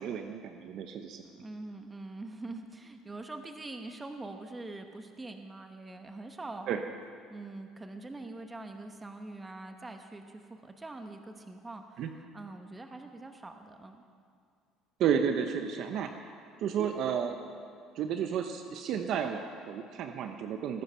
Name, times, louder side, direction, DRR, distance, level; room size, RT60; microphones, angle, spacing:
voice 1, 0.0-1.2 6.7-6.8 12.0-12.1 15.0-16.1 16.6-17.4 18.0-20.8, right 8 dB, 60° right, 6 dB, 0.8 m, -32 dB
voice 2, 1.2-6.9 7.3-14.0, right 2 dB, 15° right, 6 dB, 0.9 m, -44 dB
19.5 x 9.7 x 5.7 m, 2.2 s
cardioid pair, 115°, 0 cm